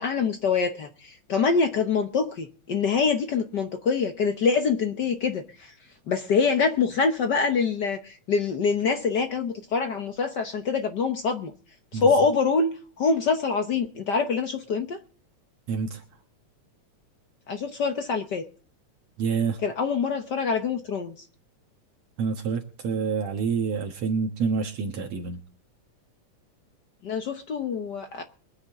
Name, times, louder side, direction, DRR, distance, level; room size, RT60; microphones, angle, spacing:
voice 1, 0.0-5.7 6.1-11.5 11.9-15.0 17.5-18.4 19.6-21.1 27.0-28.2, left 5 dB, 70° left, 1.0 m, -25 dB
voice 2, 15.7-16.0 19.2-19.6 22.2-25.4, right 5 dB, 65° right, 2.4 m, -27 dB
23.0 x 9.7 x 3.6 m
omnidirectional pair, 3.3 m